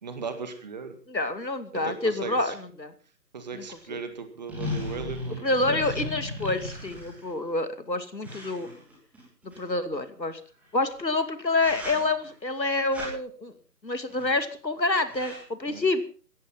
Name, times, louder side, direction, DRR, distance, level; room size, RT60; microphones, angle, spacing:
voice 1, 0.0-1.0 1.7-2.5 3.3-5.8 15.7-15.8, right 5 dB, 25° right, 9 dB, 1.9 m, -37 dB
voice 2, 1.1-2.9 3.5-4.0 5.4-8.7 9.4-10.4 10.7-13.5 13.8-16.0, left 2 dB, 85° left, 11 dB, 2.6 m, -28 dB
sound 1, 4.5-7.3 8.2-9.6 11.0-11.2 11.5-12.3 12.9-13.1 14.1-14.5 14.7-14.8 15.0-15.4, left 1 dB, 5° right, 3.0 m, -36 dB
17.0 x 14.0 x 5.7 m, 0.40 s
figure-of-eight pair, 155°, 50 cm